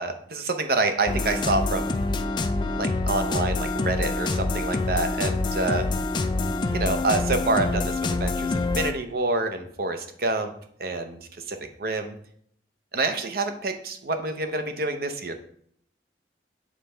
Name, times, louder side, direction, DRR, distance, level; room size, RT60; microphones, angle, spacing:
voice 1, 0.0-2.0 2.8-5.9 6.7-10.5 10.8-11.2 11.5-12.2 12.9-15.3, right 2 dB, 55° right, 7 dB, 0.7 m, -27 dB
sound 1, 1.1-8.9, left 3 dB, 25° left, 0.3 m, -26 dB
7.3 x 4.1 x 3.3 m, 0.63 s
head